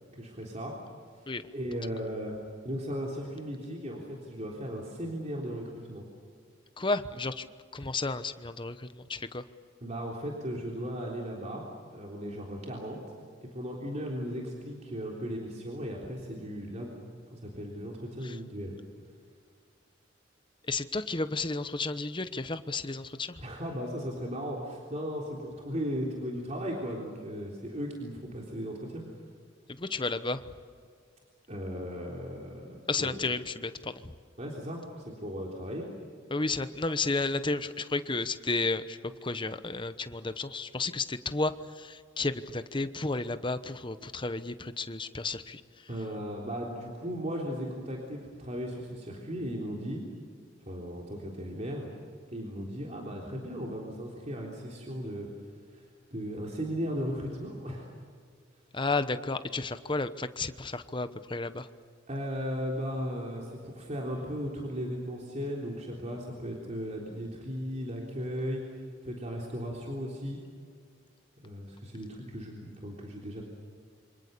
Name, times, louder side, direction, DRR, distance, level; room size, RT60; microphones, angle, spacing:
voice 1, 0.2-0.7 1.5-2.3 2.6-5.6 5.9-6.0 9.8-13.0 13.5-17.0 17.3-18.8 23.4-29.0 31.5-33.2 34.4-35.9 45.9-50.0 50.7-51.9 52.3-55.3 55.7-55.8 56.1-57.9 62.1-68.6 69.0-70.4 71.4-73.4, equal, 35° right, -2 dB, 3.7 m, -36 dB
voice 2, 6.8-7.5 7.7-9.4 18.2-18.4 20.7-23.4 29.8-30.4 32.9-33.9 36.3-41.5 41.8-45.6 58.7-61.7, left 3 dB, 25° left, 11 dB, 1.0 m, -32 dB
27.5 x 26.0 x 6.9 m, 2.1 s
head